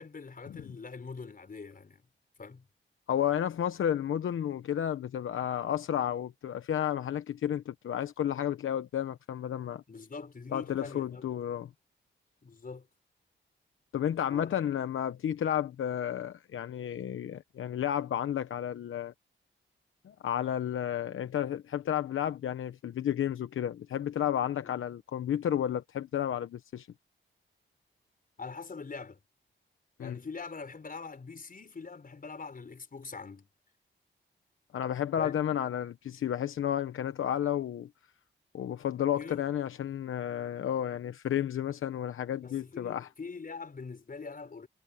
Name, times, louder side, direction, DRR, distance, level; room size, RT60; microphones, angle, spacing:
voice 1, 0.0-2.0 2.4-2.7 9.9-11.3 12.4-12.9 14.3-14.6 24.6-24.7 28.4-29.2 30.0-33.5 35.2-35.4 39.1-39.4 42.4-44.7, left 4 dB, 45° left, 5.1 m, -43 dB
voice 2, 3.1-9.8 10.5-11.7 13.9-19.1 20.0-26.9 30.0-30.2 34.7-37.9 38.5-43.1, left 10 dB, 85° left, 1.0 m, -32 dB
cardioid pair, 75°, 20 cm